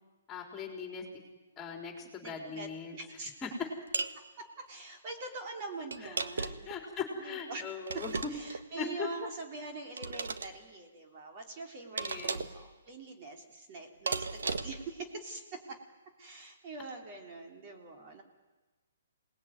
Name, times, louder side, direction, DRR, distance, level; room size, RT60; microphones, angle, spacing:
voice 1, 0.3-1.0 1.6-3.0 6.0-8.3 8.8-9.1 11.9-12.5, left 6 dB, 15° left, 3 dB, 3.9 m, -40 dB
voice 2, 2.2-3.3 4.1-6.7 7.1-15.8 16.2-18.2, right 3 dB, 30° right, 3 dB, 3.4 m, -44 dB
sound 1, 3.9-4.2 5.9-6.7 7.9-8.6 10.0-10.5 12.0-12.6 14.1-14.9, right 4 dB, 90° right, 1.6 m, -35 dB
27.0 x 19.5 x 9.5 m, 1.2 s
hypercardioid pair, 160°, 0 cm